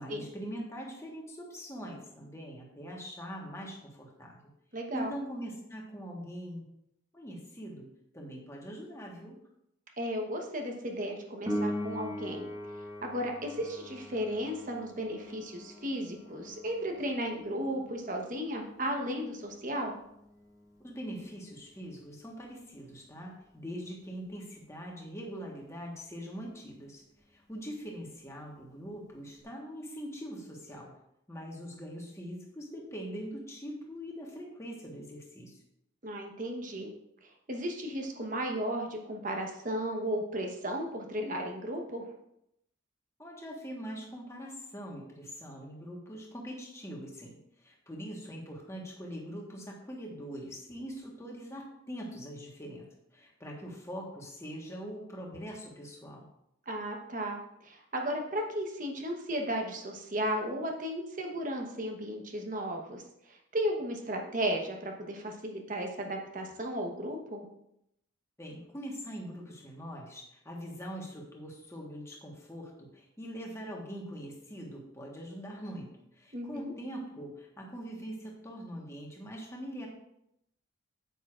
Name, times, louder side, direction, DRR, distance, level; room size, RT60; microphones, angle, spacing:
voice 1, 0.0-4.5 4.9-6.7 7.1-7.9 8.1-9.4 20.8-27.0 27.3-31.0 31.3-35.6 43.2-56.2 68.4-79.9, equal, 15° left, -1 dB, 1.3 m, -42 dB
voice 2, 4.7-5.1 10.0-12.5 13.0-19.9 36.0-36.9 37.2-42.1 56.7-63.0 63.3-67.5 76.3-76.7, equal, 40° right, 2 dB, 1.1 m, -35 dB
Piano, 11.5-21.9 29.4-29.5, equal, 15° right, 0.9 m, -42 dB
9.1 x 8.2 x 2.5 m, 0.79 s
head